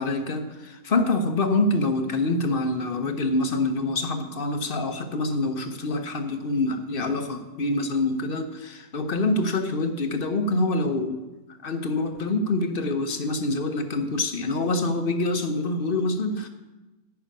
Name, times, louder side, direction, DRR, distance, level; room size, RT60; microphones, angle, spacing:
voice 1, 0.0-11.2 11.6-16.5, left 2 dB, 45° left, 7 dB, 0.9 m, -26 dB
10.5 x 5.8 x 8.7 m, 1.1 s
omnidirectional pair, 1.6 m